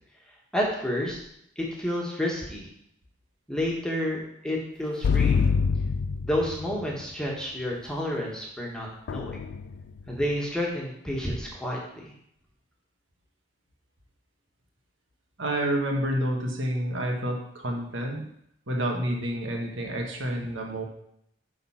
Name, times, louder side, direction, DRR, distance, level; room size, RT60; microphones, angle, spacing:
voice 1, 0.5-1.2 1.6-2.7 3.5-5.5 6.2-9.4 10.1-12.1, left 1 dB, 5° left, -3 dB, 1.5 m, -30 dB
sound 1, 5.0-6.8 9.1-10.0, left 5 dB, 65° left, 0.3 m, -25 dB
voice 2, 15.4-18.2 18.7-20.8, right 1 dB, 80° right, 1 dB, 1.5 m, -29 dB
9.3 x 3.9 x 5.7 m, 0.74 s
head